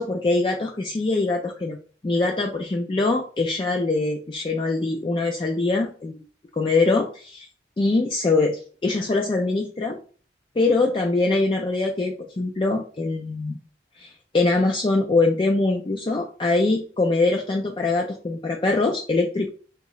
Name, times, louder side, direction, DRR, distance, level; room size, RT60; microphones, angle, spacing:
voice 1, 0.0-1.8 2.0-6.2 6.5-7.5 7.8-10.0 10.6-13.6 14.0-19.5, left 3 dB, 25° left, 1 dB, 0.3 m, -23 dB
3.5 x 2.8 x 3.1 m, 0.41 s
head